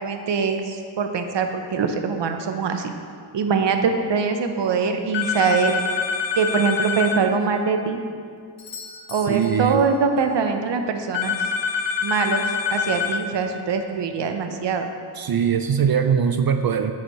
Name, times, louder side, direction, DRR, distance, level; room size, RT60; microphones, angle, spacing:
voice 1, 0.0-2.9 3.3-5.8 6.3-8.0 9.1-11.4 12.0-12.4 12.7-14.9, right 5 dB, 75° right, 6 dB, 0.9 m, -23 dB
sound 1, 5.1-7.2 11.1-13.2, left 6 dB, 85° left, 0.8 m, -25 dB
Doorbell, 8.6-10.4 14.5-14.6, left 5 dB, 55° left, 0.9 m, -42 dB
voice 2, 9.3-9.8 15.2-16.9, right 7 dB, 55° right, 7 dB, 0.5 m, -21 dB
10.5 x 7.4 x 3.1 m, 2.2 s
cardioid pair, 65°, 43 cm